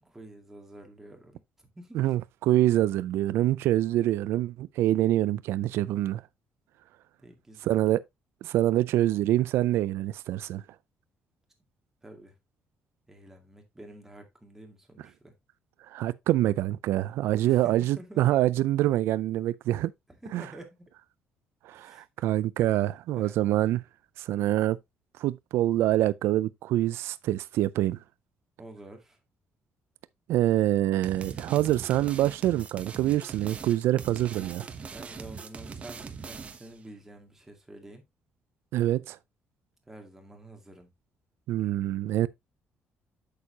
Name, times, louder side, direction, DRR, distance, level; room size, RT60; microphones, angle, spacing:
voice 1, 0.0-2.0 7.2-7.8 12.0-12.3 13.1-15.3 17.4-18.3 20.2-20.9 21.7-22.1 23.1-23.4 28.6-29.2 34.8-38.1 39.9-40.9, right 1 dB, 10° right, 2.2 m, -48 dB
voice 2, 1.9-6.2 7.6-8.0 8.4-10.6 15.9-19.9 20.3-20.4 21.6-23.8 24.2-24.8 25.2-28.0 30.3-34.6 38.7-39.2 41.5-42.3, right 14 dB, 85° right, 0.4 m, -25 dB
sound 1, 31.0-36.8, right 5 dB, 30° right, 1.0 m, -41 dB
8.4 x 6.8 x 2.8 m
cardioid pair, 145°, 4 cm